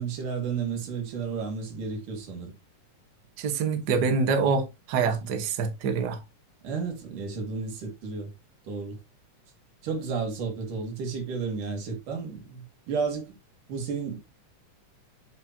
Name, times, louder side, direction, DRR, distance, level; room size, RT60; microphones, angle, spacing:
voice 1, 0.0-2.5 5.0-5.3 6.6-8.3 8.7-9.0 9.8-13.4 13.7-14.2, right 5 dB, 90° right, 3.6 m, -32 dB
voice 2, 3.4-6.2, right 5 dB, 50° right, 1.3 m, -26 dB
8.0 x 6.3 x 2.8 m
omnidirectional pair, 3.6 m